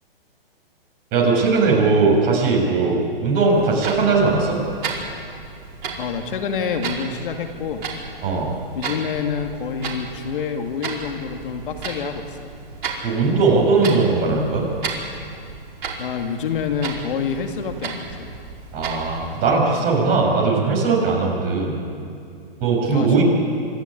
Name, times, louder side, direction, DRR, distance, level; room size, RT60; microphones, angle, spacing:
voice 1, 1.1-4.6 8.2-8.5 13.0-14.7 18.7-21.8 22.6-23.2, right 4 dB, 30° right, -1 dB, 6.7 m, -19 dB
Clock, 3.5-19.5, right 4 dB, 55° right, 5.1 m, -34 dB
voice 2, 6.0-7.8 8.7-12.2 16.0-18.3 22.9-23.2, left 6 dB, 60° left, 5 dB, 2.4 m, -27 dB
26.5 x 13.0 x 10.0 m, 2.4 s
hypercardioid pair, 135°, 30 cm